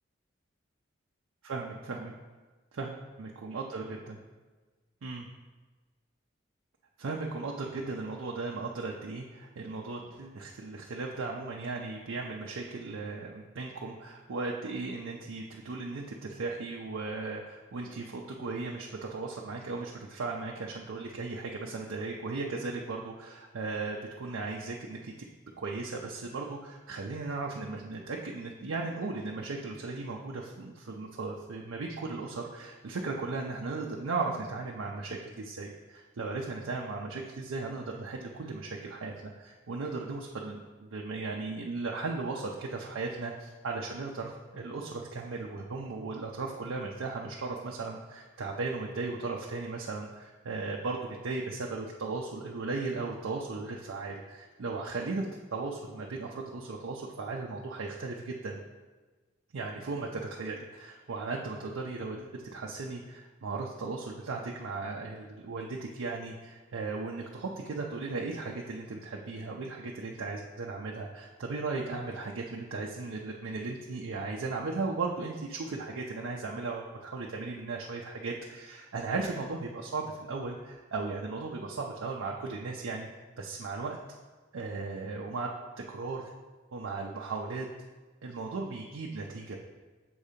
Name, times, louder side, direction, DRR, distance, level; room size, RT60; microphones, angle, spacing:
voice 1, 1.4-2.1 2.8-4.2 5.0-5.3 7.0-25.1 25.6-55.3 55.5-58.6 59.5-83.1 83.4-84.0 84.5-85.5 85.9-86.3 86.7-87.7 88.2-89.6, right 3 dB, 90° right, -1 dB, 0.5 m, -36 dB
7.0 x 2.8 x 5.0 m, 1.3 s
head